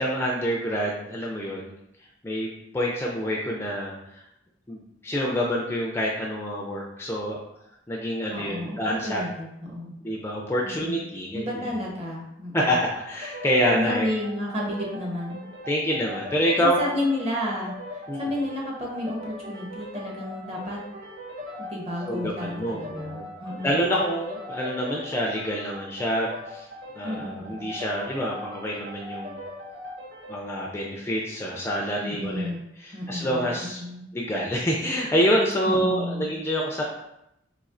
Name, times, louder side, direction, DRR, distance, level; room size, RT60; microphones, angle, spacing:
voice 1, 0.0-1.7 2.2-2.5 2.7-4.2 4.7-7.4 7.9-9.2 10.0-11.7 12.5-14.1 15.7-16.8 18.1-18.3 22.1-23.3 23.6-26.7 27.0-29.4 30.3-32.5 32.8-33.8 34.1-36.8, equal, 15° left, -2 dB, 0.3 m, -27 dB
voice 2, 8.3-9.9 10.6-11.0 11.3-12.8 13.7-15.4 16.6-20.8 21.7-23.7 27.0-27.4 32.0-32.6 32.9-34.0 35.6-36.3, left 1 dB, 30° right, -2 dB, 0.8 m, -31 dB
sound 1, 13.0-30.4, left 1 dB, 90° right, 0.9 m, -40 dB
4.1 x 2.7 x 2.4 m, 0.81 s
head